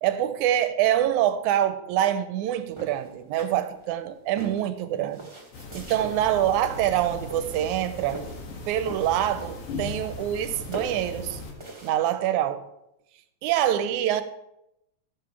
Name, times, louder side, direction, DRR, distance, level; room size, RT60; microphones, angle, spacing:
voice 1, 0.0-5.2 5.7-8.2 8.7-11.4 11.8-12.6 13.4-14.2, right 11 dB, 80° right, 11 dB, 2.1 m, -25 dB
sound 1, 2.7-4.0 4.4-6.1 6.8-7.0 7.3-8.5 8.8-9.7 10.0-10.5 10.7-11.9, right 3 dB, 15° right, 1.3 m, -41 dB
sound 2, 5.5-11.5, left 3 dB, 75° left, 3.1 m, -38 dB
16.5 x 7.5 x 3.3 m, 0.82 s
omnidirectional pair, 3.5 m